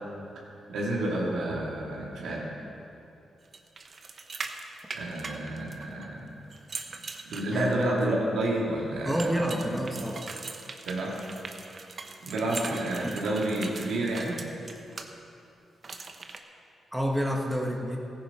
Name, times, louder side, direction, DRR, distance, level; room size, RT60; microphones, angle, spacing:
voice 1, 0.7-2.4 4.9-6.3 6.8-7.0 7.2-9.8 10.8-11.1 12.2-14.4, right 1 dB, 80° right, -4 dB, 2.7 m, -30 dB
sound 1, 3.5-6.0 6.5-8.0 9.2-15.1 15.8-16.4, right 4 dB, 50° right, 1.0 m, -41 dB
voice 2, 9.0-10.3 13.0-13.2 16.9-18.0, equal, 5° right, 0 dB, 1.6 m, -29 dB
15.0 x 10.5 x 4.5 m, 2.8 s
supercardioid pair, 55°, 0 cm